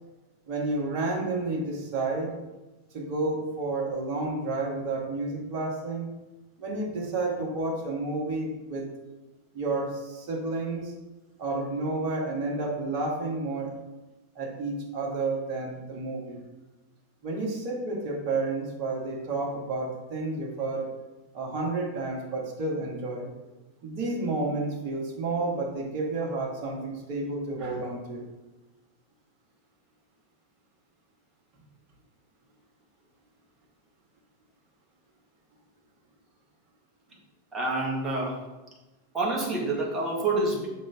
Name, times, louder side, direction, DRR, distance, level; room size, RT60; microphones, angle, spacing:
voice 1, 0.5-2.4 2.9-6.1 6.6-8.8 9.5-10.9 11.4-13.7 14.4-16.4 17.2-20.9 21.3-23.3 23.8-28.3, right 2 dB, 40° right, -1 dB, 1.8 m, -30 dB
voice 2, 37.5-38.4 39.1-40.7, right 2 dB, 20° right, -3 dB, 1.9 m, -27 dB
6.2 x 5.7 x 3.6 m, 1.1 s
figure-of-eight pair, 90°, 0 cm